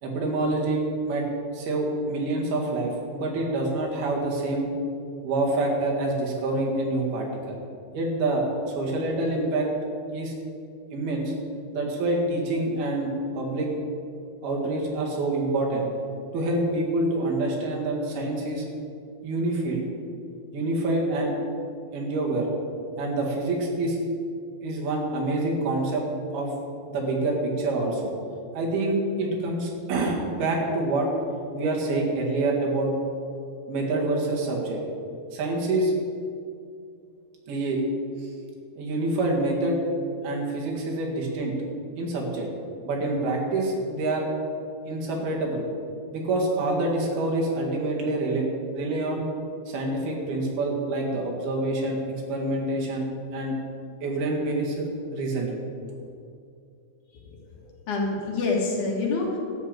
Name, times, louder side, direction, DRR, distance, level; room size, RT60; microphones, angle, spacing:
voice 1, 0.0-1.3 1.5-4.7 5.2-7.6 7.9-8.5 8.8-9.7 10.1-10.3 10.9-11.3 11.7-13.7 14.4-15.9 16.3-18.7 19.2-19.8 20.5-21.3 21.9-22.5 23.0-24.0 24.6-26.1 26.3-26.5 26.9-28.1 28.5-31.1 31.5-32.9 33.7-34.8 35.3-35.9 37.5-37.8 38.2-38.3 38.8-39.8 40.2-41.5 42.0-42.5 42.8-44.3 44.9-45.7 46.1-48.5 48.7-49.3 49.7-53.1 53.3-53.5 54.0-55.6, right 2 dB, 85° right, -1 dB, 3.9 m, -26 dB
voice 2, 57.1-59.4, left 3 dB, 60° left, -2 dB, 2.9 m, -28 dB
12.5 x 6.6 x 8.8 m, 2.4 s
omnidirectional pair, 4.3 m